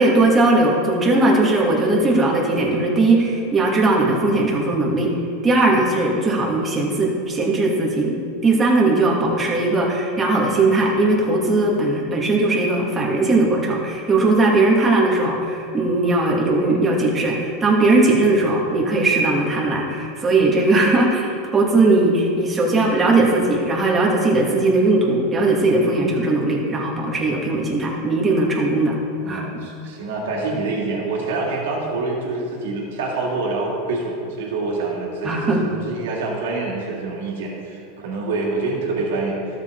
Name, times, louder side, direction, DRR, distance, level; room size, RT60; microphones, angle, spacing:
voice 1, 0.0-5.1 5.4-8.1 8.4-29.0 29.3-29.5 35.2-35.6, right 2 dB, 20° right, -3 dB, 2.6 m, -18 dB
voice 2, 25.8-26.2 29.2-39.4, right 3 dB, 75° right, -3 dB, 2.6 m, -26 dB
13.0 x 7.7 x 4.1 m, 2.6 s
hypercardioid pair, 110°, 0 cm